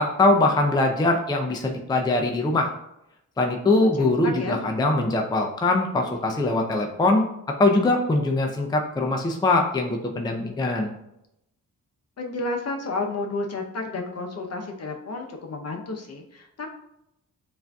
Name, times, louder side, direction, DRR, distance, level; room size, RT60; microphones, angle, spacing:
voice 1, 0.0-2.7 3.4-7.2 7.6-10.9, left 2 dB, 10° left, 2 dB, 0.4 m, -22 dB
voice 2, 3.8-4.6 12.2-16.7, left 3 dB, 45° left, 2 dB, 0.7 m, -31 dB
6.9 x 2.6 x 2.3 m, 0.83 s
cardioid pair, 85°, 34 cm